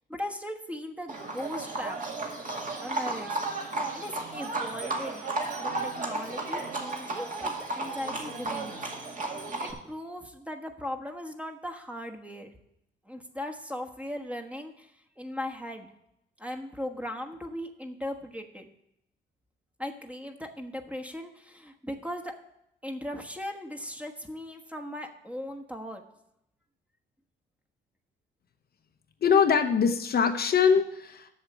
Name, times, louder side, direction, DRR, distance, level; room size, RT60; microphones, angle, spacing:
voice 1, 0.1-2.0 2.8-3.4 3.9-5.2 5.6-8.8 9.6-12.5 13.0-14.9 15.2-15.9 16.4-18.7 19.8-22.3 22.8-26.0, left 1 dB, 5° right, 5 dB, 1.3 m, -38 dB
Livestock farm animals working animals, 1.1-9.7, right 2 dB, 40° right, 2.2 m, -34 dB
voice 2, 29.2-31.3, left 6 dB, 50° left, 6 dB, 0.9 m, -23 dB
8.1 x 6.6 x 7.3 m, 0.78 s
cardioid pair, 90°, 20 cm